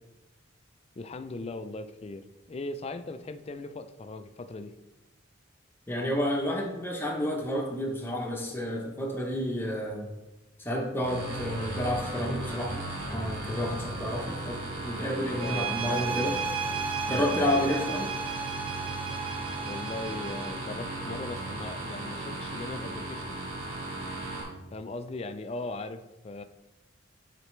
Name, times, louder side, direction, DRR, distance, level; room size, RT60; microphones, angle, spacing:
voice 1, 1.0-4.8 15.4-15.9 17.0-17.3 19.6-23.4 24.7-26.4, left 2 dB, 30° left, 10 dB, 0.4 m, -39 dB
voice 2, 5.9-10.1 10.6-16.4 17.1-18.1, left 1 dB, 10° left, -1 dB, 0.8 m, -30 dB
sound 1, 11.0-24.4, right 2 dB, 85° right, 1.9 m, -36 dB
sound 2, 15.4-20.7, right 6 dB, 25° right, 0.6 m, -34 dB
9.7 x 4.1 x 3.1 m, 1.0 s
head